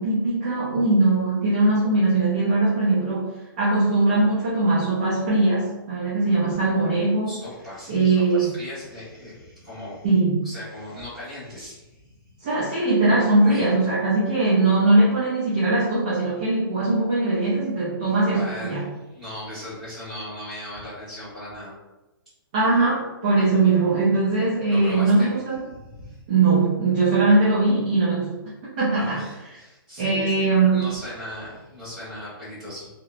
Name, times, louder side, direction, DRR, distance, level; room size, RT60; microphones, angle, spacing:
voice 1, 0.0-3.3 3.6-7.4 7.9-8.5 10.0-10.5 12.4-18.9 22.5-25.6 26.3-28.3 28.8-29.2 30.0-30.9, right 2 dB, 20° right, -8 dB, 0.4 m, -20 dB
voice 2, 7.3-10.1 10.4-12.4 13.4-13.7 18.0-21.7 24.7-25.3 25.7-26.2 28.9-32.9, left 1 dB, ahead, -16 dB, 1.2 m, -38 dB
2.8 x 2.0 x 2.4 m, 1.1 s
hypercardioid pair, 180°, 12 cm